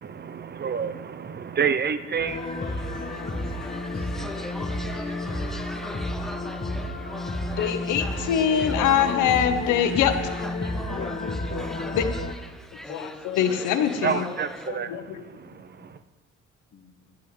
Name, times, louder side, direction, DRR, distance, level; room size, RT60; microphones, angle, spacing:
voice 1, 0.0-3.6 14.0-16.0, right 7 dB, 35° right, 13 dB, 0.7 m, -30 dB
sound 1, 2.2-12.3, left 2 dB, 30° left, 2.0 m, -31 dB
sound 2, 2.3-14.7, equal, ahead, 0.7 m, -40 dB
voice 2, 7.6-10.1 12.0-12.1 12.9-14.2 14.7-15.2, left 9 dB, 90° left, 8 dB, 1.0 m, -23 dB
voice 3, 10.8-12.1 15.4-15.6 16.7-17.2, left 5 dB, 50° left, 6 dB, 1.3 m, -41 dB
11.0 x 5.8 x 9.0 m, 1.2 s
cardioid pair, 90°, 30 cm